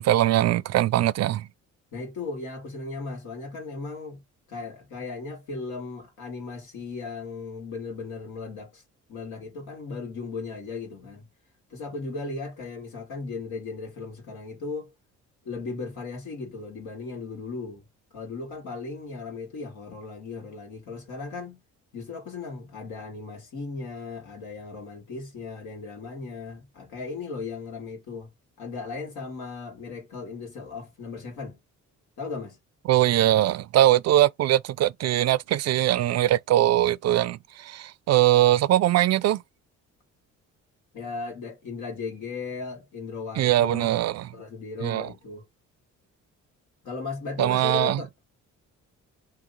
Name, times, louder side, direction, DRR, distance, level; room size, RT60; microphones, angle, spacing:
voice 1, 0.0-1.5 32.9-39.4 43.4-44.3 44.8-45.1 47.4-48.0, right 13 dB, 60° right, 0.4 m, -21 dB
voice 2, 1.9-4.2 4.5-8.8 9.1-11.2 11.7-14.9 15.4-17.8 18.1-21.6 21.9-28.3 28.6-31.6 32.2-32.6 40.9-43.9 44.3-45.5 46.8-48.1, left 4 dB, 85° left, 1.7 m, -36 dB
2.9 x 2.8 x 3.9 m
cardioid pair, 90°, 30 cm